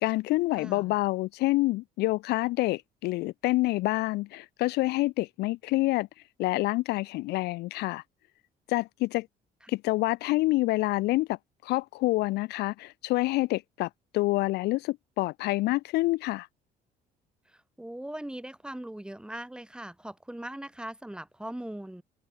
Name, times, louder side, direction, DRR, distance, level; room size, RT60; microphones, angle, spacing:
voice 1, 0.0-6.1 6.4-8.0 8.7-9.3 9.7-16.5, left 19 dB, 80° left, 0.4 m, -27 dB
voice 2, 0.5-0.9 17.5-22.0, right 1 dB, 5° right, 2.9 m, -40 dB
open air
cardioid pair, 110°, 17 cm